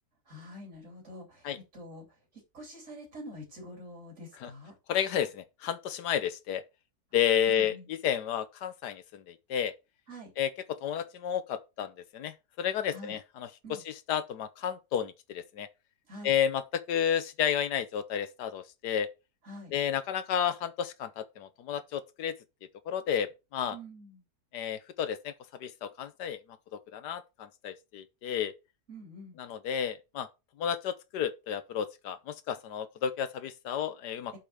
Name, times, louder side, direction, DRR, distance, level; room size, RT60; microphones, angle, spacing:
voice 1, 0.3-2.1 2.5-4.7 7.5-7.9 10.1-10.3 12.9-13.2 13.6-13.8 16.1-16.3 19.4-19.8 23.7-24.2 28.9-29.4 34.3-34.4, equal, 50° right, 3.4 m, -46 dB
voice 2, 4.9-6.6 7.1-9.7 10.4-15.7 16.2-19.1 19.7-22.3 22.9-23.8 24.5-25.3 25.6-26.4 26.7-28.5 29.4-30.3 30.6-34.3, left 9 dB, 85° left, 1.5 m, -32 dB
7.5 x 5.1 x 5.6 m
omnidirectional pair, 1.7 m